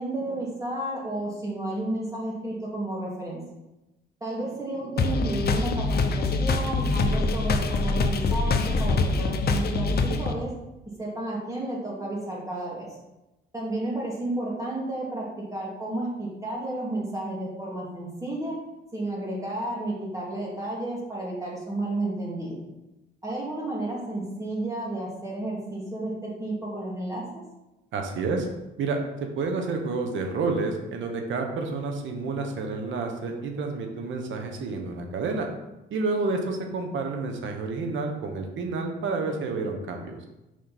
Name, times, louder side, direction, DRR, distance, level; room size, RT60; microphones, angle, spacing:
voice 1, 0.0-3.4 4.2-10.5 11.0-12.9 13.5-18.6 18.9-22.6 23.2-27.2, right 1 dB, 15° right, -5 dB, 2.2 m, -32 dB
sound 1, 5.0-10.3, left 3 dB, 55° left, 0.8 m, -24 dB
voice 2, 27.9-28.5 28.8-35.5 35.9-40.2, right 3 dB, 75° right, 4 dB, 1.3 m, -29 dB
6.4 x 5.3 x 4.2 m, 0.98 s
cardioid pair, 90°, 20 cm